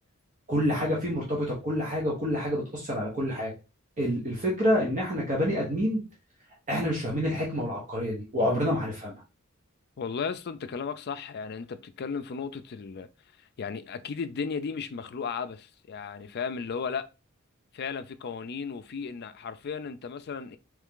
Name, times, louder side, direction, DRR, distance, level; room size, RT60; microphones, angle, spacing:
voice 1, 0.5-3.5 4.0-6.0 6.7-9.2, equal, 35° right, 1.1 m, -28 dB
voice 2, 10.0-13.1 13.6-17.1 17.7-20.6, left 5 dB, 50° left, 0.4 m, -35 dB
3.6 x 3.2 x 3.6 m
head